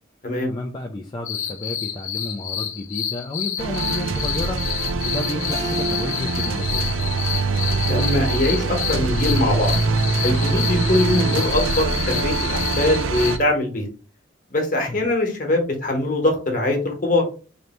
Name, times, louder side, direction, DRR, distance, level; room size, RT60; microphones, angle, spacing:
voice 1, 0.5-6.9 14.9-15.0, left 2 dB, 20° left, 2 dB, 0.3 m, -32 dB
sound 1, 1.3-13.4, left 9 dB, 85° left, 0.8 m, -29 dB
sound 2, 3.6-13.4, right 3 dB, 85° right, 0.5 m, -24 dB
Keyboard (musical), 5.5-8.7, right 1 dB, 20° right, 0.6 m, -37 dB
voice 2, 7.8-9.7 10.2-13.9 14.5-17.2, left 1 dB, 40° left, 2 dB, 1.1 m, -22 dB
3.3 x 2.6 x 4.1 m, 0.36 s
head